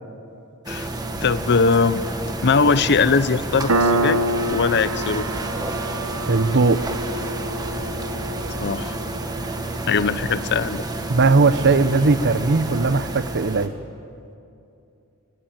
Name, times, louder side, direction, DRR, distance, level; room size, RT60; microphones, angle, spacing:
sound 1, 0.6-13.7, right 2 dB, 20° right, 1.5 m, -30 dB
voice 1, 1.2-2.0 2.4-4.2 4.5-5.3 8.6-9.0 9.9-10.8, left 4 dB, 50° left, 15 dB, 0.7 m, -20 dB
Piano, 3.7-10.9, right 1 dB, 80° right, 1.1 m, -27 dB
voice 2, 6.3-6.8 11.1-13.7, right 3 dB, 55° right, 14 dB, 0.8 m, -18 dB
23.0 x 17.0 x 9.0 m, 2.6 s
head